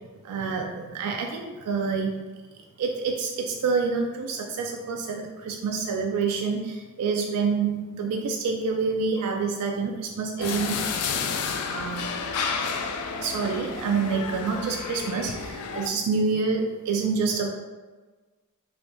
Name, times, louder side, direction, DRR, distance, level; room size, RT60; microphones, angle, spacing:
voice 1, 0.2-2.2 2.8-10.8 11.7-12.1 13.0-17.5, right 4 dB, 85° right, 1 dB, 0.3 m, -27 dB
sound 1, 10.4-15.9, left 5 dB, 75° left, 0.3 m, -31 dB
3.2 x 2.6 x 2.6 m, 1.3 s
head